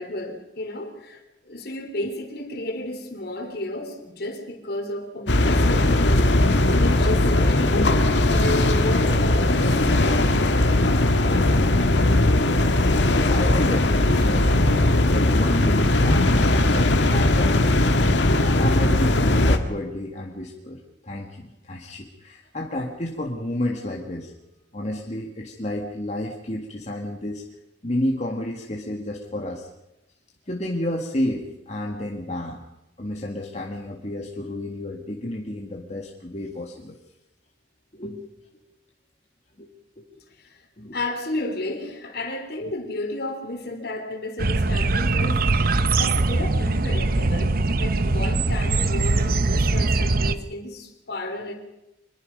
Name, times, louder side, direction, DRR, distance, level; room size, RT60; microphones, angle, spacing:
voice 1, 0.0-6.1 6.7-7.9 8.3-11.5 40.4-40.6 40.9-51.5, left 1 dB, 60° left, 5 dB, 3.4 m, -32 dB
sound 1, 5.3-19.6, left 1 dB, 80° left, 1.7 m, -19 dB
voice 2, 13.2-14.8 15.1-24.3 24.7-27.4 27.8-29.7 30.5-32.6 33.0-37.0 37.9-38.3 39.6-39.7 40.0-40.1 40.8-41.0, left 1 dB, 40° left, 0 dB, 1.8 m, -31 dB
sound 2, 44.4-50.3, right 3 dB, 55° right, 0.9 m, -21 dB
24.5 x 21.5 x 5.3 m, 0.92 s
head